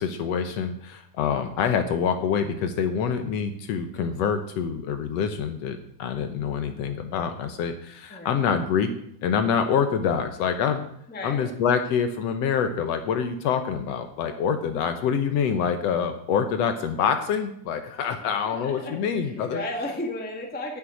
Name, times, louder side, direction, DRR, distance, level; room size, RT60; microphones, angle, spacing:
voice 1, 0.0-8.9 9.2-10.8 11.2-19.6, left 7 dB, 75° left, 8 dB, 1.5 m, -26 dB
voice 2, 8.1-8.4 11.1-11.5 18.0-18.1 18.4-20.8, left 1 dB, 15° left, 1 dB, 0.3 m, -34 dB
8.7 x 7.7 x 9.0 m, 0.71 s
omnidirectional pair, 4.0 m